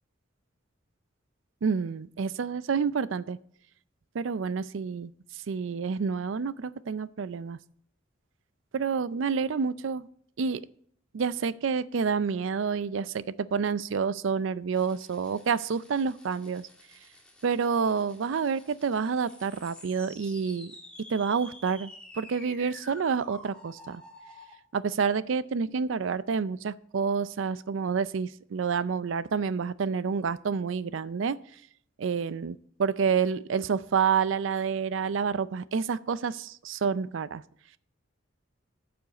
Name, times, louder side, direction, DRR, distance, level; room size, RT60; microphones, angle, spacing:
voice 1, 1.6-3.4 4.1-5.1 5.5-7.6 8.7-10.1 10.4-10.6 11.1-16.7 17.4-20.7 21.1-21.9 22.2-24.0 24.7-31.4 32.0-37.4, right 6 dB, 70° right, 17 dB, 0.4 m, -28 dB
sound 1, 14.7-24.5, left 1 dB, 5° left, 1.7 m, -50 dB
14.0 x 5.1 x 4.0 m, 0.66 s
head